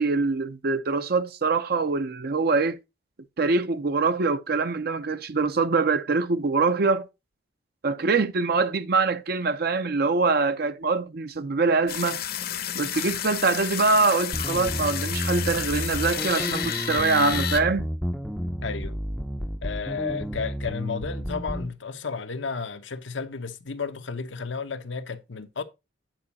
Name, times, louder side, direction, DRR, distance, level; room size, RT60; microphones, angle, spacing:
voice 1, 0.0-2.8 3.4-7.1 7.8-12.2 12.7-17.9, right 4 dB, 55° right, 0.6 m, -24 dB
sound 1, 11.9-17.6, left 9 dB, 55° left, 0.8 m, -31 dB
sound 2, 14.3-21.7, equal, ahead, 0.5 m, -31 dB
voice 2, 18.6-19.0 19.6-25.6, left 5 dB, 85° left, 0.9 m, -32 dB
9.1 x 4.8 x 4.1 m
head